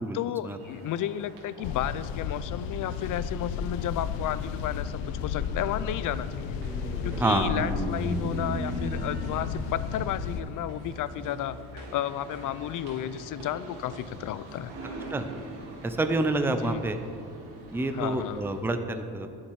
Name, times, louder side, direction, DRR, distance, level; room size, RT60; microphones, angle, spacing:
voice 1, 0.1-4.9 5.2-6.6 7.0-14.7 16.6-16.9 17.9-18.5, left 11 dB, 50° left, 15 dB, 0.6 m, -32 dB
sound 1, 0.6-18.6, right 2 dB, 70° right, 3.0 m, -46 dB
sound 2, 1.6-10.4, left 7 dB, 90° left, 0.8 m, -33 dB
sound 3, 4.2-13.7, right 1 dB, 20° right, 2.4 m, -38 dB
voice 2, 7.2-7.5 15.1-15.3 15.8-17.0 17.7-19.3, right 2 dB, 5° right, 8 dB, 0.6 m, -27 dB
18.5 x 7.4 x 4.8 m, 2.4 s
cardioid pair, 135°, 42 cm